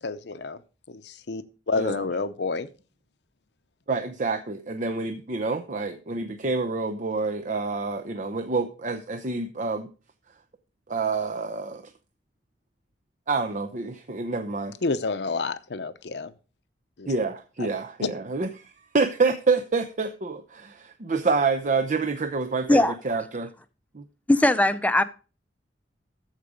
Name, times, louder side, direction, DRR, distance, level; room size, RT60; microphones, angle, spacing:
voice 1, 0.0-0.6 0.9-2.7 14.8-16.3 17.0-17.1 17.6-17.7 18.0-18.1, left 3 dB, 70° left, 0.7 m, -29 dB
voice 2, 3.9-9.9 10.9-11.8 13.3-14.7 17.1-18.5 18.9-23.5 23.9-24.0, right 4 dB, 45° right, 0.7 m, -27 dB
voice 3, 24.3-25.0, left 1 dB, 10° left, 0.6 m, -19 dB
14.0 x 4.9 x 5.1 m
head